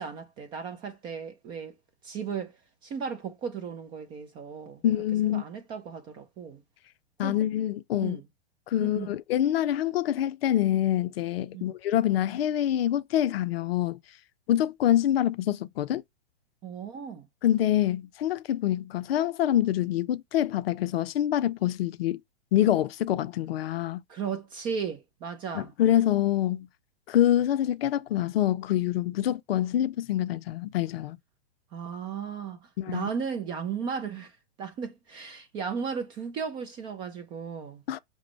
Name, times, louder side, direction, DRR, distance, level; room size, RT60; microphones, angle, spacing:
voice 1, 0.0-1.7 2.0-2.6 2.8-4.8 5.3-6.6 7.2-7.4 8.0-8.2 8.8-9.1 11.5-11.6 16.6-17.3 24.1-25.7 31.7-34.3 34.6-37.8, right 6 dB, 15° right, 0.3 m, -35 dB
voice 2, 4.8-5.4 7.2-8.2 8.7-14.0 14.5-16.0 17.4-22.2 22.5-24.0 25.5-26.7 27.1-31.2 32.8-33.1 37.9-38.0, left 12 dB, 60° left, 0.5 m, -26 dB
5.9 x 2.1 x 3.1 m
hypercardioid pair, 115°, 34 cm